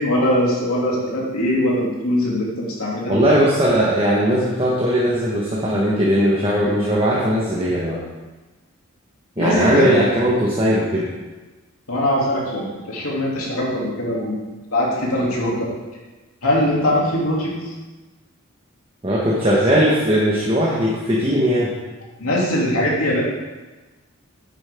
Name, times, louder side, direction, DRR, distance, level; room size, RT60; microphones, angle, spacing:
voice 1, 0.0-3.2 9.4-9.9 11.9-14.4 14.7-15.7 16.4-17.5 22.2-23.2, left 1 dB, 80° left, -4 dB, 2.9 m, -21 dB
voice 2, 3.1-8.0 9.4-11.1 19.0-21.7, equal, 25° right, -7 dB, 1.5 m, -18 dB
10.5 x 9.1 x 3.7 m, 1.2 s
head